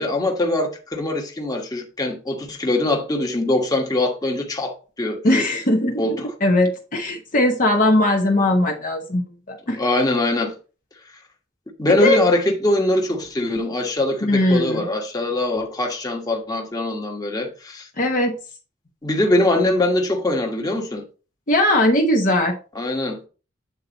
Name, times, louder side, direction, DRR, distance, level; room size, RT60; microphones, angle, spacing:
voice 1, 0.0-5.5 6.0-6.3 9.7-10.5 11.8-17.9 19.0-21.0 22.7-23.3, left 1 dB, 20° left, 1.3 m, -22 dB
voice 2, 5.2-6.0 6.4-9.2 9.5-9.8 11.9-12.2 14.2-14.9 18.0-18.4 21.5-22.5, left 1 dB, 45° left, 1.0 m, -19 dB
8.6 x 4.1 x 3.9 m
head